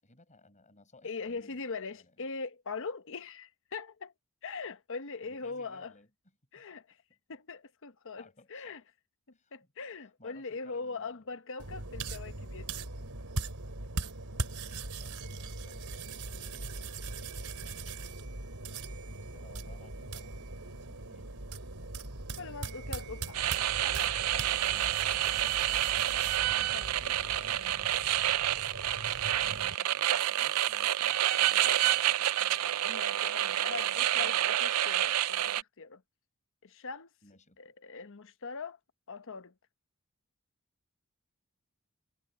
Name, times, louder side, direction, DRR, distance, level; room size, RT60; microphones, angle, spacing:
voice 1, 0.0-1.6 1.9-2.3 5.2-6.1 6.5-6.6 7.1-7.2 8.2-8.8 9.3-9.5 10.2-11.2 15.0-16.9 19.1-21.5 24.7-25.0 27.6-28.4 29.2-34.4 37.2-37.7, left 2 dB, 35° left, 6.3 m, -60 dB
voice 2, 1.0-4.1 4.4-5.9 6.5-7.0 7.3-8.8 9.5-12.9 22.4-23.5 23.8-24.5 26.7-27.7 32.8-36.0 36.6-37.1 37.6-38.8 39.1-39.5, left 4 dB, 60° left, 1.0 m, -41 dB
sound 1, 11.6-29.8, right 3 dB, 70° right, 3.7 m, -40 dB
sound 2, 23.3-35.6, right 12 dB, 90° right, 0.5 m, -29 dB
head